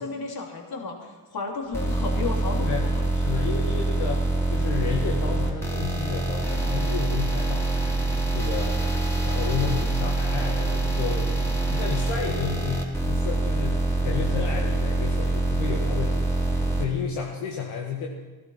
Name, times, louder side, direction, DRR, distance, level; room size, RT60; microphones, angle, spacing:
voice 1, 0.0-3.0, left 4 dB, 45° left, 1 dB, 3.5 m, -33 dB
sound 1, 1.7-16.8, right 2 dB, 5° left, 3.6 m, -25 dB
voice 2, 2.6-7.7 8.3-8.8 9.2-11.4 11.7-16.3 16.8-18.1, left 6 dB, 70° left, -1 dB, 1.9 m, -31 dB
16.0 x 11.5 x 5.8 m, 1.2 s
supercardioid pair, 65°, 50 cm